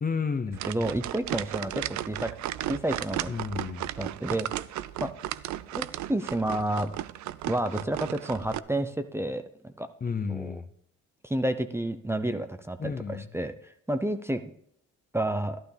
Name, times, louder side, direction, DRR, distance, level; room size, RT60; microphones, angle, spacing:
voice 1, 0.0-0.6 3.3-3.9 10.0-10.7 12.8-13.3, left 5 dB, 30° left, 9 dB, 0.8 m, -31 dB
sound 1, 0.5-8.6, right 13 dB, 70° right, 0.5 m, -35 dB
voice 2, 0.7-2.3 2.6-3.4 4.0-4.5 5.0-5.1 5.7-6.9 7.5-9.9 10.3-10.6 11.2-14.4 15.1-15.6, right 1 dB, 10° right, 9 dB, 0.7 m, -30 dB
12.0 x 11.5 x 3.4 m, 0.69 s
cardioid pair, 90°, 30 cm